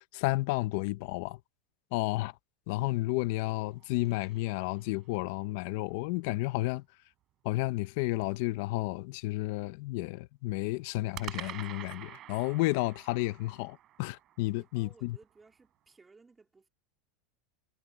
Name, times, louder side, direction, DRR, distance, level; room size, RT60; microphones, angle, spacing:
voice 1, 0.0-1.4 1.9-2.3 2.7-6.8 7.4-15.2, left 20 dB, 60° left, 0.7 m, -32 dB
sound 1, 3.4-5.3 11.1-15.4, right 13 dB, 35° right, 4.5 m, -48 dB
voice 2, 14.5-16.7, right 4 dB, 10° right, 3.8 m, -59 dB
supercardioid pair, 155°, 0 cm